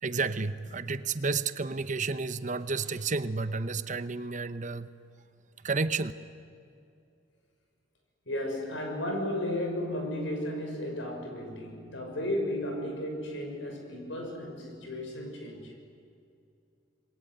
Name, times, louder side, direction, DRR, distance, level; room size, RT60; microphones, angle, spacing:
voice 1, 0.0-4.9 5.6-6.1, right 4 dB, 40° right, 13 dB, 0.8 m, -31 dB
voice 2, 8.3-15.7, left 1 dB, 75° left, 3 dB, 6.4 m, -34 dB
27.5 x 21.5 x 9.4 m, 2.5 s
head